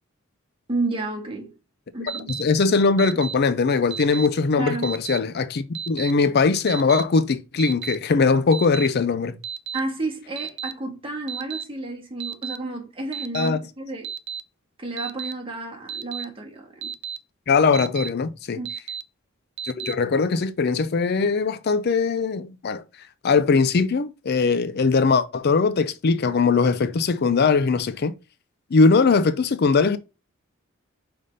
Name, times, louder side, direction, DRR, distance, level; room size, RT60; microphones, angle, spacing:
voice 1, 0.7-1.5 1.9-2.3 4.6-4.9 9.7-14.1 14.8-16.9 18.5-18.7, right 2 dB, 25° right, 1.6 m, -31 dB
Alarm, 2.1-2.4 3.0-3.3 3.9-4.3 4.8-5.2 5.7-6.1 6.7-7.0 7.6-8.0 8.5-8.9 9.4-9.8 10.4-10.7 11.3-11.6 12.2-12.6 13.1-13.5 14.0-14.4 15.0-15.3 15.9-16.2 16.8-17.2 17.7-18.1 18.7-19.0 19.6-19.9, right 8 dB, 55° right, 0.4 m, -32 dB
voice 2, 2.4-9.4 13.3-13.6 17.5-18.6 19.6-22.8 23.2-28.1 28.7-30.0, left 4 dB, 50° left, 0.4 m, -20 dB
5.5 x 3.4 x 5.2 m
head